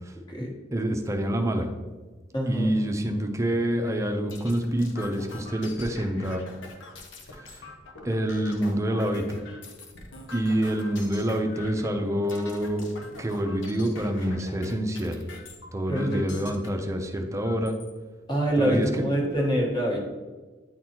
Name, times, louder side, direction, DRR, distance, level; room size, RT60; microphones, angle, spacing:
voice 1, 0.7-1.7 2.5-6.4 7.3-7.6 8.0-9.4 10.3-12.9 13.2-15.2 15.7-17.8 18.6-19.0, right 1 dB, 15° right, 4 dB, 0.6 m, -27 dB
voice 2, 2.3-2.7 15.9-16.2 18.3-20.0, equal, 25° left, -1 dB, 1.3 m, -25 dB
sound 1, 3.9-16.7 17.4-17.9 18.5-18.6 18.9-19.5, left 3 dB, 85° left, 0.9 m, -44 dB
9.4 x 3.9 x 2.9 m, 1.3 s
head